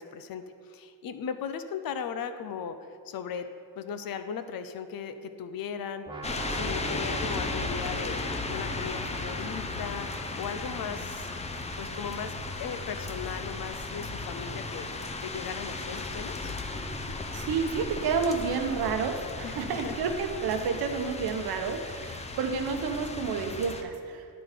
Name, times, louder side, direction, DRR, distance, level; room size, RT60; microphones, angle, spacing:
voice 1, 0.0-2.8 3.1-3.5 3.8-6.0 6.5-10.1 10.4-11.3 11.8-16.5 19.4-20.0, left 7 dB, 70° left, 10 dB, 0.6 m, -37 dB
sound 1, 6.1-12.0, right 3 dB, 15° right, 0.7 m, -43 dB
sound 2, 6.2-23.8, left 3 dB, 20° left, 0.5 m, -36 dB
voice 2, 17.3-24.3, right 5 dB, 75° right, 6 dB, 0.9 m, -30 dB
10.5 x 4.0 x 4.9 m, 2.3 s
cardioid pair, 115°, 37 cm